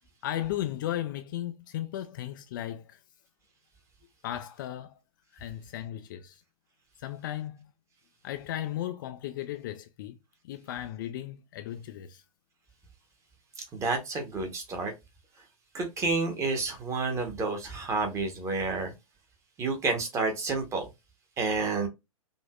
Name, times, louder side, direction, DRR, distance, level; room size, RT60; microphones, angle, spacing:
voice 1, 0.2-3.0 4.2-5.0 5.3-6.4 7.0-7.7 8.2-10.2 10.4-12.2, left 12 dB, 35° left, 0.3 m, -35 dB
voice 2, 13.6-14.9 15.7-18.9 19.6-20.9 21.4-21.9, right 3 dB, 15° right, 1.0 m, -30 dB
5.2 x 2.6 x 2.3 m
figure-of-eight pair, 110°, 18 cm